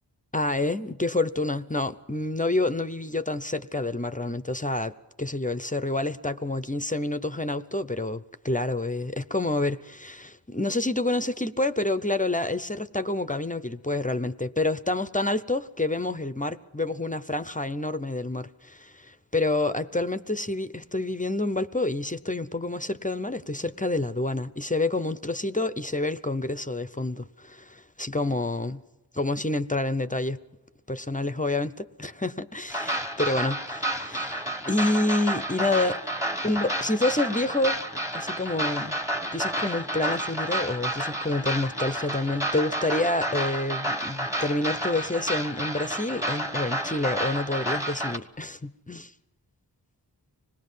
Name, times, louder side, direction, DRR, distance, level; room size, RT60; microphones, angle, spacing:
voice 1, 0.3-28.8 29.1-30.4 30.9-36.0 36.4-37.8 38.1-39.0 39.3-49.1, left 2 dB, 20° left, 0.6 m, -28 dB
sound 1, 32.7-48.2, right 1 dB, 5° right, 1.2 m, -30 dB
26.0 x 19.5 x 5.5 m
wide cardioid pair, 55°, 43 cm